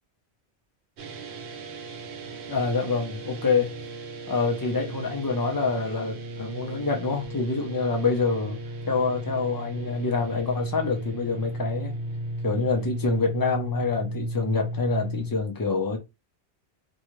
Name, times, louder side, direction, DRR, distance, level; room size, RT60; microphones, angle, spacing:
sound 1, 1.0-15.3, right 1 dB, 85° right, 0.9 m, -35 dB
voice 1, 2.5-3.7 4.3-8.6 8.9-12.0 12.4-16.0, left 4 dB, 25° left, 0.6 m, -26 dB
2.6 x 2.3 x 3.0 m
omnidirectional pair, 1.1 m